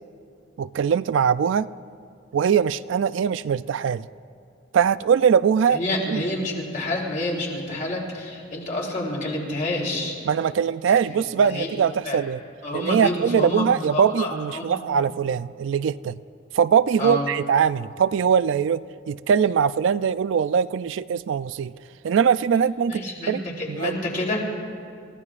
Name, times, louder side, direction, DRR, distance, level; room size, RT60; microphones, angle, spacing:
voice 1, 0.6-1.7 2.3-4.0 4.7-5.8 6.1-6.2 10.3-12.4 12.7-16.2 16.5-21.7 22.0-23.4 23.7-23.9, right 7 dB, 75° right, 16 dB, 0.3 m, -21 dB
voice 2, 5.7-10.2 11.1-11.7 12.0-12.2 12.6-14.8 17.0-17.3 22.9-24.4, left 1 dB, 40° left, -3 dB, 3.4 m, -28 dB
28.5 x 15.5 x 2.5 m, 2.4 s
head